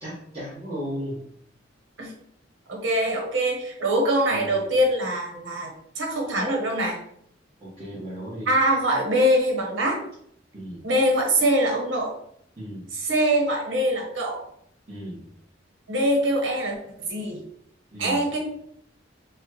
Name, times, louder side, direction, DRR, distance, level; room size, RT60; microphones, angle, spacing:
voice 1, 0.0-1.2 4.3-4.6 7.6-8.5 10.5-10.8 12.6-12.8 14.9-15.2 17.9-18.2, equal, 30° right, -9 dB, 1.4 m, -35 dB
voice 2, 2.7-5.7 5.9-7.0 8.4-10.0 10.8-12.1 12.9-14.4 15.9-17.4 18.0-18.4, right 1 dB, 85° right, 0 dB, 1.2 m, -23 dB
5.3 x 2.4 x 3.1 m, 0.70 s
head